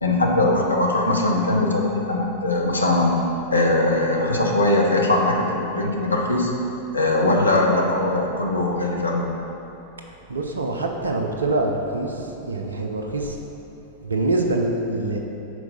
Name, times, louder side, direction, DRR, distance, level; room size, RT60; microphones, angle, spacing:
voice 1, 0.0-3.2 3.5-6.5 6.9-9.3, left 2 dB, 80° left, -1 dB, 0.8 m, -21 dB
voice 2, 10.0-13.4 14.0-15.2, right 2 dB, 75° right, 2 dB, 0.7 m, -25 dB
6.2 x 4.5 x 5.4 m, 2.9 s
figure-of-eight pair, 90°, 0 cm